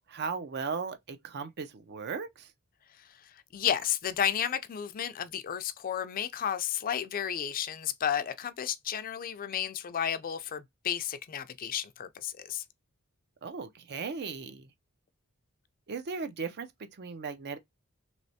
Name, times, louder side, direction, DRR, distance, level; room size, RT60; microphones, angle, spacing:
voice 1, 0.1-2.5 13.4-14.7 15.9-17.6, right 5 dB, 50° right, 0.5 m, -37 dB
voice 2, 3.2-12.6, left 9 dB, 40° left, 0.4 m, -32 dB
3.2 x 3.0 x 2.7 m
head